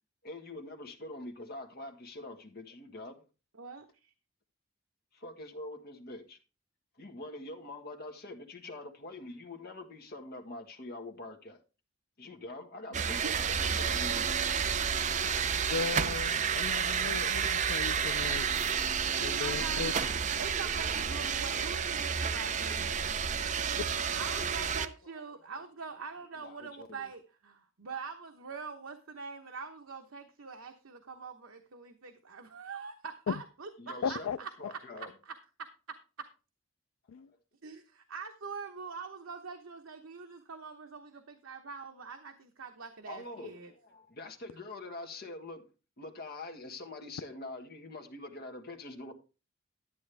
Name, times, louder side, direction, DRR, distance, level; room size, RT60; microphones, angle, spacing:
voice 1, 0.2-3.2 5.1-6.4 7.0-11.6 12.2-14.3 23.4-24.6 26.4-27.0 33.8-34.3 34.6-35.1 43.1-45.7 46.0-49.1, left 2 dB, 50° left, 1.6 m, -45 dB
voice 2, 3.6-4.1 12.9-13.3 19.3-20.1 20.4-23.1 24.2-35.3 35.6-36.3 37.6-43.7, right 5 dB, 85° right, 1.0 m, -44 dB
sound 1, 12.9-24.9, right 7 dB, 35° right, 0.6 m, -30 dB
voice 3, 15.7-18.5 19.2-19.9 33.3-33.4 34.0-34.4 37.1-37.3, left 6 dB, 90° left, 0.4 m, -36 dB
11.5 x 8.4 x 3.4 m
head